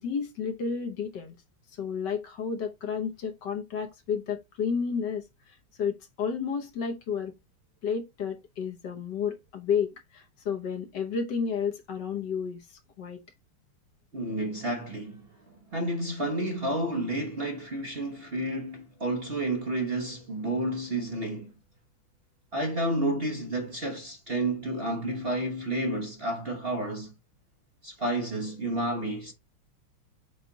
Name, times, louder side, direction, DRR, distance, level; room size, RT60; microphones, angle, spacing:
voice 1, 0.0-1.4 1.7-7.3 7.8-13.2, left 6 dB, 60° left, 1.6 m, -31 dB
voice 2, 14.1-21.6 22.5-27.1 27.8-29.3, right 1 dB, 35° right, 1.2 m, -31 dB
7.4 x 3.3 x 4.0 m
omnidirectional pair, 2.2 m